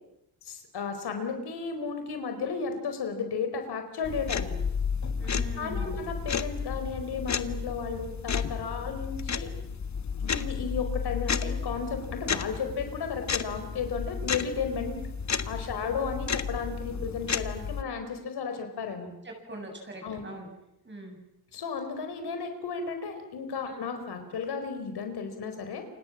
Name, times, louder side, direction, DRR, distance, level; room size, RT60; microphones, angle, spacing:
voice 1, 0.5-4.5 5.6-9.5 10.2-15.0 15.4-19.1 20.0-20.2 21.5-25.9, left 5 dB, 80° left, 7 dB, 4.7 m, -34 dB
sound 1, 4.0-17.8, left 6 dB, 45° left, 1.5 m, -32 dB
voice 2, 5.2-6.1 15.7-15.9 19.2-20.5 20.8-21.2 23.7-23.8, right 2 dB, 30° right, 2 dB, 7.6 m, -42 dB
29.0 x 27.0 x 7.4 m, 0.85 s
cardioid pair, 115°, 39 cm